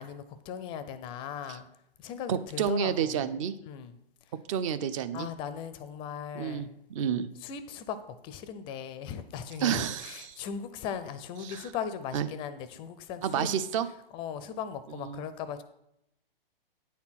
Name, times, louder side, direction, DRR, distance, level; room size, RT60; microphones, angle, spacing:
voice 1, 0.0-1.7 2.0-3.3 3.6-3.9 5.1-6.7 7.4-8.0 8.2-13.6 14.1-15.6, left 8 dB, 15° left, 12 dB, 0.4 m, -38 dB
voice 2, 2.3-3.6 4.5-5.3 6.3-7.3 9.6-10.4 11.4-11.6 12.1-12.3 13.2-13.9 15.0-15.2, right 8 dB, 35° right, 13 dB, 0.5 m, -30 dB
9.2 x 4.4 x 5.8 m, 0.82 s
hypercardioid pair, 130°, 29 cm